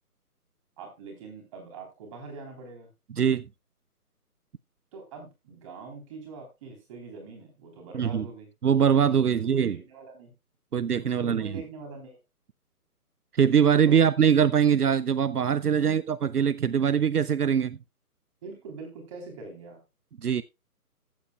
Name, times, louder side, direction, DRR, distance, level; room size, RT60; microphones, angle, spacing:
voice 1, 0.8-2.9 4.9-8.5 9.3-10.3 11.0-12.2 13.8-14.0 15.8-16.0 18.4-19.8, right 4 dB, 20° right, 3.6 m, -43 dB
voice 2, 7.9-8.3 8.6-9.8 10.7-11.5 13.3-17.8 20.2-20.4, right 8 dB, 75° right, 0.6 m, -22 dB
15.0 x 8.8 x 2.3 m
figure-of-eight pair, 150°, 47 cm